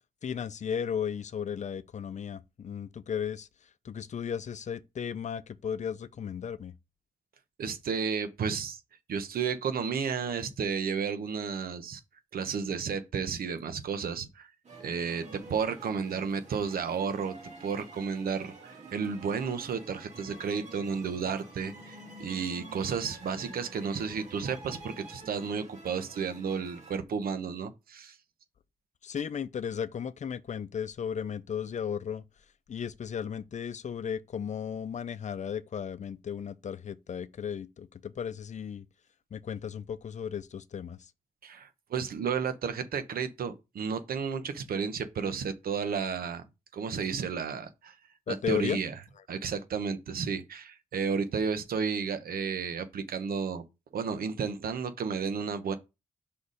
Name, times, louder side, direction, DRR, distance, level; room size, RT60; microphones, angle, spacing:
voice 1, 0.2-6.7 29.0-32.2 32.7-38.9 39.3-41.1 48.3-48.8, left 7 dB, 50° left, 0.5 m, -35 dB
voice 2, 7.6-8.8 9.1-12.0 12.3-14.5 14.8-17.3 17.6-28.2 41.4-46.5 46.7-48.0 48.3-48.9 49.3-53.6 53.9-55.8, right 6 dB, 85° right, 1.0 m, -32 dB
sound 1, 14.6-27.0, right 2 dB, 50° right, 2.1 m, -48 dB
5.7 x 4.1 x 5.0 m
wide cardioid pair, 100°, 15 cm